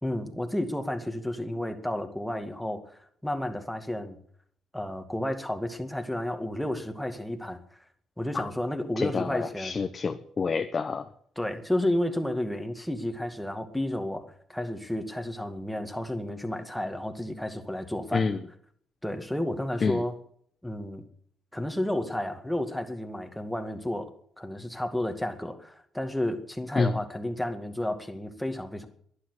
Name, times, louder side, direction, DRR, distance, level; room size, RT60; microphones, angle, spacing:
voice 1, 0.0-4.2 4.7-7.6 8.2-9.8 11.4-18.3 19.0-20.1 20.6-21.1 21.5-28.9, left 1 dB, 5° left, 5 dB, 2.1 m, -32 dB
voice 2, 9.0-11.0 18.1-18.4 19.8-20.0 26.8-26.9, left 4 dB, 35° left, 7 dB, 1.0 m, -28 dB
11.5 x 10.5 x 10.0 m, 0.63 s
cardioid pair, 90°, 0 cm